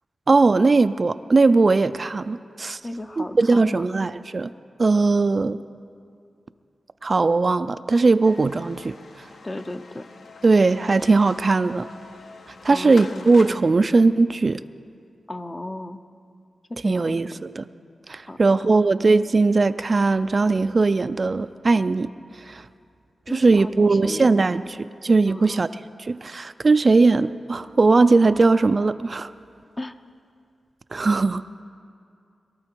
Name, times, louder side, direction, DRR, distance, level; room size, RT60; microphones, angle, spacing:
voice 1, 0.3-2.8 3.2-4.5 4.8-5.6 7.0-9.3 10.4-11.9 12.6-14.6 16.8-17.6 18.1-22.1 22.3-22.7 23.3-25.7 26.1-29.3 30.9-31.6, right 3 dB, 35° right, 11 dB, 0.3 m, -19 dB
voice 2, 2.8-3.8 9.4-10.1 12.7-13.3 15.3-16.0 16.7-17.4 18.2-18.8 23.3-24.5 25.2-25.6 29.8-30.0, left 1 dB, 20° left, 9 dB, 0.5 m, -35 dB
sound 1, 8.2-13.6, left 4 dB, 65° left, 0.8 m, -44 dB
22.5 x 13.5 x 4.5 m, 2.4 s
wide cardioid pair, 135°, 0 cm